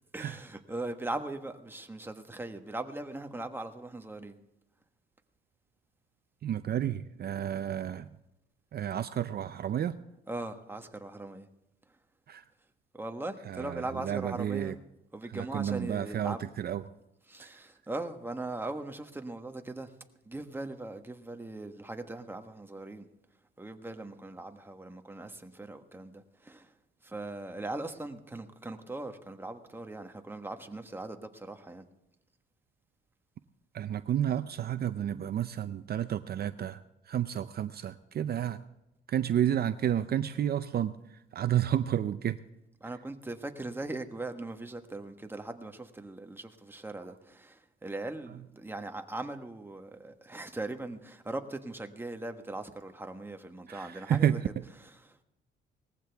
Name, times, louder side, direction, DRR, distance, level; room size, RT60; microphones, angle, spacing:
voice 1, 0.1-4.4 10.3-11.5 12.9-14.8 15.1-16.4 17.3-19.9 20.3-23.1 23.6-26.7 27.0-31.8 42.8-54.4 55.1-55.2, right 2 dB, 10° right, 1.3 m, -40 dB
voice 2, 6.4-8.1 8.7-10.0 12.3-12.4 13.5-14.8 15.3-16.8 17.4-17.5 33.7-38.6 39.1-42.4 53.7-54.4, right 10 dB, 55° right, 0.6 m, -31 dB
19.0 x 15.0 x 3.5 m
cardioid pair, 90°, 20 cm